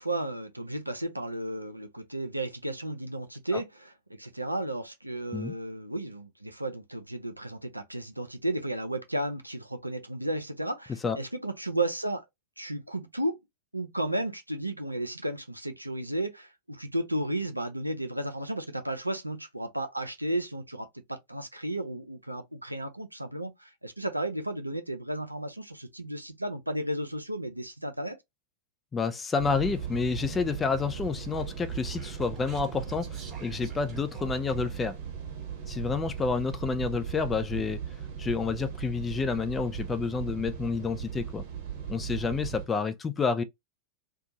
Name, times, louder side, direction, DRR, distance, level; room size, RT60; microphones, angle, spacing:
voice 1, 0.0-12.2 12.6-13.4 13.7-28.2, right 1 dB, 85° right, 0.5 m, -33 dB
voice 2, 28.9-35.0 35.7-37.8 38.2-41.4 41.9-43.4, left 5 dB, 15° left, 0.5 m, -29 dB
sound 1, 29.4-42.7, right 8 dB, 50° right, 1.0 m, -38 dB
Speech, 31.3-34.8, right 5 dB, 25° right, 1.0 m, -52 dB
2.6 x 2.3 x 2.8 m
figure-of-eight pair, 90°, 0 cm